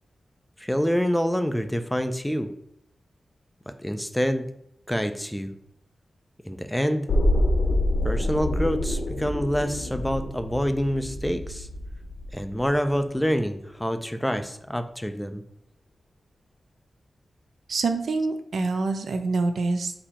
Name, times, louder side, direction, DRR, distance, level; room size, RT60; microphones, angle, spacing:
voice 1, 0.6-2.5 3.7-4.5 4.9-5.5 6.5-7.1 8.0-11.7 12.3-15.4, equal, 5° left, 9 dB, 0.3 m, -26 dB
sound 1, 7.1-13.0 13.4-13.5, left 1 dB, 65° left, 0.9 m, -27 dB
voice 2, 17.7-19.9, right 3 dB, 75° right, 7 dB, 0.5 m, -26 dB
4.2 x 2.7 x 4.2 m, 0.76 s
wide cardioid pair, 110°, 0 cm